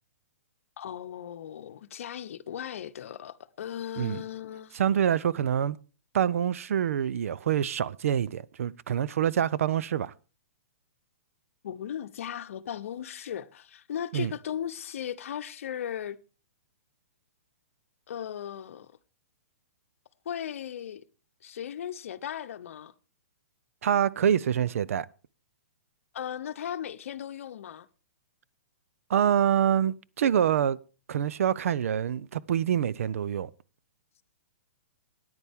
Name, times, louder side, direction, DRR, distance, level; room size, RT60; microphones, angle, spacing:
voice 1, 0.8-4.8 11.6-16.2 18.1-18.9 20.2-21.0 21.4-22.9 26.1-27.9, left 9 dB, 65° left, 0.8 m, -37 dB
voice 2, 4.7-5.8 6.1-10.1 14.1-14.3 23.8-25.1 29.1-30.8 31.1-33.5, right 9 dB, 70° right, 0.6 m, -26 dB
14.0 x 9.7 x 3.6 m
hypercardioid pair, 140°, 8 cm